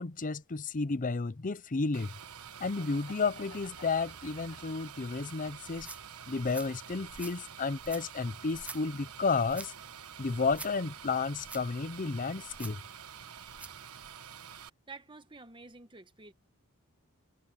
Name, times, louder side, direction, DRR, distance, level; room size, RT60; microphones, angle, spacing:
voice 1, 0.0-2.1 2.6-5.9 6.3-9.7 10.2-12.8, left 4 dB, 35° left, 0.6 m, -32 dB
sound 1, 1.9-14.7, right 8 dB, 90° right, 1.3 m, -48 dB
Laughter, 2.5-5.7 6.1-7.2, left 5 dB, 65° left, 1.4 m, -57 dB
sound 2, 5.7-13.8, right 2 dB, 5° right, 0.5 m, -49 dB
voice 2, 14.9-16.3, right 3 dB, 20° right, 1.3 m, -49 dB
head